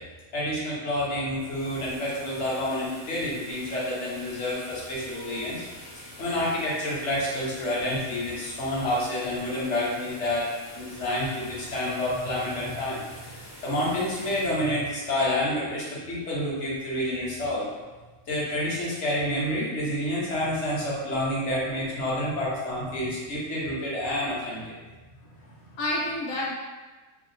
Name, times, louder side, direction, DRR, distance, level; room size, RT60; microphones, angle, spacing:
voice 1, 0.3-5.6 6.2-13.3 13.6-17.7 18.3-24.7, left 1 dB, 60° left, -6 dB, 1.1 m, -29 dB
sound 1, 1.1-16.0, left 1 dB, 25° left, 0.4 m, -46 dB
voice 2, 25.3-26.5, left 1 dB, 80° left, -4 dB, 1.2 m, -30 dB
2.8 x 2.8 x 2.6 m, 1.3 s
omnidirectional pair, 1.4 m